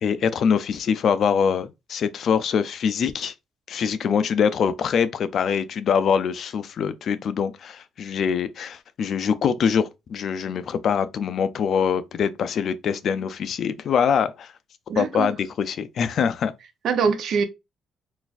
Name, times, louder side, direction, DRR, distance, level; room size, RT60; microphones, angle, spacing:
voice 1, 0.0-3.3 3.7-14.5 15.0-16.5, left 7 dB, 60° left, 0.4 m, -24 dB
voice 2, 14.9-15.3 16.8-17.4, right 6 dB, 65° right, 0.6 m, -23 dB
3.9 x 2.5 x 2.4 m
cardioid pair, 115°, 0 cm